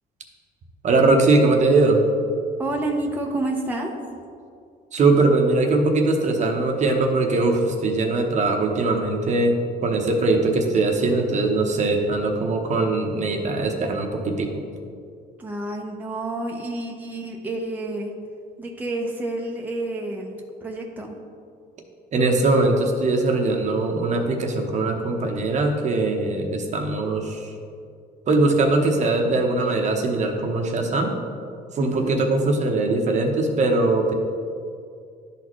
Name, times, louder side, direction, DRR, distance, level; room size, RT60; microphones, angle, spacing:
voice 1, 0.8-2.0 4.9-14.6 22.1-27.5 28.3-31.1 31.7-34.1, right 2 dB, 45° right, 3 dB, 0.9 m, -21 dB
voice 2, 2.6-3.9 15.4-18.1 18.6-21.2 31.8-32.1, right 2 dB, 10° right, 0 dB, 0.7 m, -29 dB
11.5 x 4.1 x 3.1 m, 2.3 s
cardioid pair, 110°, 17 cm